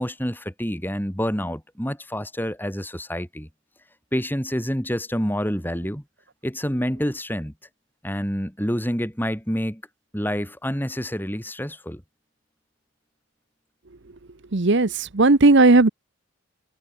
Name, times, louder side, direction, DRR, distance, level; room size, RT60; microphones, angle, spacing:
voice 1, 0.0-3.5 4.1-6.0 6.4-7.5 8.0-9.8 10.1-12.0, equal, 10° left, 5.9 m, -27 dB
voice 2, 14.5-15.9, right 2 dB, 55° right, 1.0 m, -16 dB
head